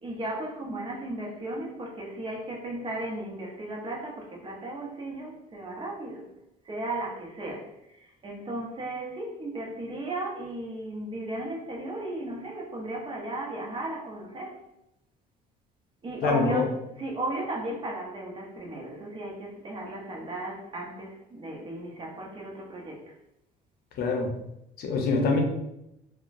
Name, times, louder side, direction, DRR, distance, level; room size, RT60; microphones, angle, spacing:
voice 1, 0.0-6.3 6.6-7.7 8.0-14.6 16.0-16.7 17.0-23.0, right 1 dB, 30° right, -2 dB, 0.8 m, -35 dB
voice 2, 16.2-16.6 24.0-24.3 24.8-25.4, left 4 dB, 65° left, 2 dB, 0.6 m, -24 dB
2.9 x 2.2 x 2.5 m, 0.85 s
cardioid pair, 110°, 17 cm